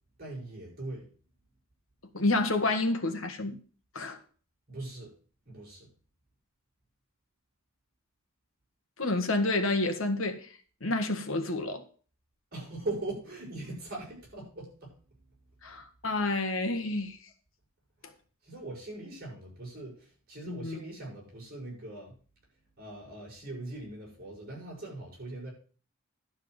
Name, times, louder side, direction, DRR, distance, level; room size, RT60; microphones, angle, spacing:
voice 1, 0.2-1.1 4.7-5.1 5.4-5.9 12.5-15.5 18.0-18.1 18.4-22.1 22.8-25.5, right 2 dB, 45° right, 6.5 m, -41 dB
voice 2, 2.1-3.6 3.9-4.2 9.0-10.5 10.8-11.8 15.6-17.2 20.5-20.8, left 2 dB, 75° left, 1.7 m, -29 dB
11.5 x 4.9 x 7.9 m
head